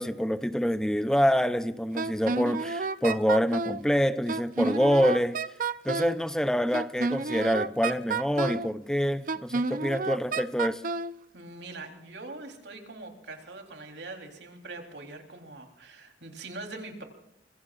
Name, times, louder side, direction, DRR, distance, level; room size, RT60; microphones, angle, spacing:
voice 1, 0.0-5.4 5.8-10.8, equal, 5° left, 0.5 m, -26 dB
Wind instrument woodwind instrument, 2.0-3.8 4.3-6.2 6.7-8.7 9.3-11.1, right 4 dB, 50° right, 0.6 m, -30 dB
voice 2, 11.3-17.0, right 2 dB, 80° right, 3.6 m, -43 dB
25.5 x 22.5 x 2.5 m
head